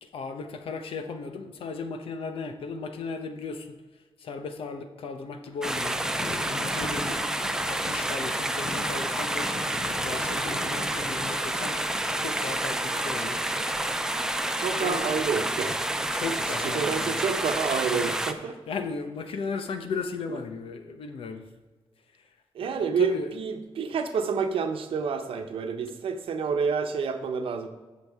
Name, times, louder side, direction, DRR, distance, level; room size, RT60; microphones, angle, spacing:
voice 1, 0.0-3.7 4.2-6.0 6.4-7.2 7.7-9.5 10.0-11.8 12.2-13.4 14.4-15.2 16.1-17.2 18.0-18.2 18.7-21.5 22.1-22.3 22.6-23.3, left 4 dB, 85° left, 7 dB, 1.0 m, -36 dB
Thunder, 5.5-12.7, left 3 dB, 45° left, 0.9 m, -40 dB
sound 1, 5.6-18.3, right 1 dB, 5° right, 0.5 m, -29 dB
voice 2, 14.6-15.8 16.6-18.6 22.5-27.7, right 6 dB, 85° right, 6 dB, 0.9 m, -28 dB
15.0 x 6.2 x 3.6 m, 1.3 s
wide cardioid pair, 160°, 9 cm